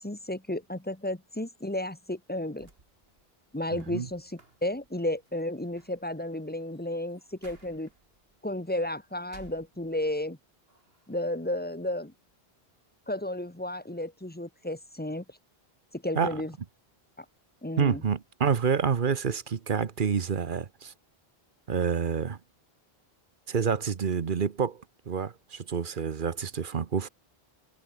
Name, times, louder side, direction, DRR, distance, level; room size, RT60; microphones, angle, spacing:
voice 1, 0.0-2.7 3.5-7.9 8.4-10.4 11.1-12.1 13.1-15.2 15.9-16.5 17.2-17.3 17.6-18.0, left 1 dB, 10° left, 1.4 m, -33 dB
sound 1, 2.6-10.3 10.7-11.5, right 3 dB, 70° right, 3.4 m, -59 dB
voice 2, 17.8-20.9 21.7-22.4 23.5-27.1, right 6 dB, 55° right, 1.2 m, -28 dB
omnidirectional pair, 1.0 m